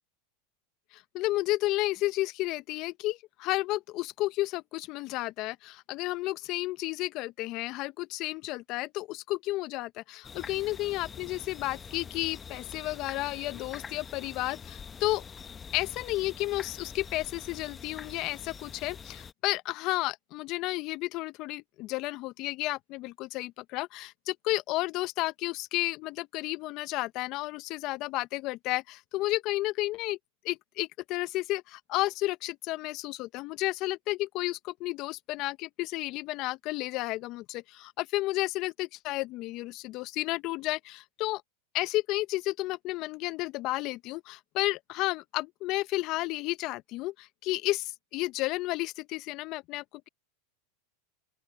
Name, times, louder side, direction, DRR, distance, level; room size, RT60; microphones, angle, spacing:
voice 1, 0.9-15.2 15.7-30.2 30.4-41.4 41.7-50.1, left 18 dB, 50° left, 0.7 m, -32 dB
sound 1, 10.2-19.3, left 6 dB, 25° left, 1.1 m, -45 dB
open air
hypercardioid pair, 100°, 0 cm